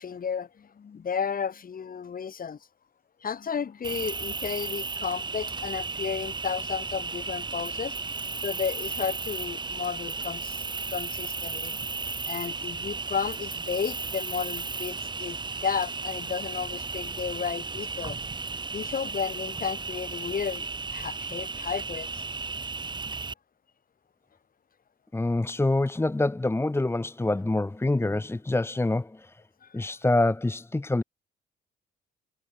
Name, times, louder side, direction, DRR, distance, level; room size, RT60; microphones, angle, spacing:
voice 1, 0.0-2.6 3.2-7.9 8.4-11.8 12.3-18.2 18.7-20.7 20.9-22.3 29.6-29.9, left 7 dB, 45° left, 3.8 m, -33 dB
Cricket, 3.8-23.3, right 4 dB, 20° right, 1.2 m, -34 dB
voice 2, 25.1-29.3 29.7-31.0, left 2 dB, 10° left, 1.2 m, -26 dB
cardioid pair, 90°, 20 cm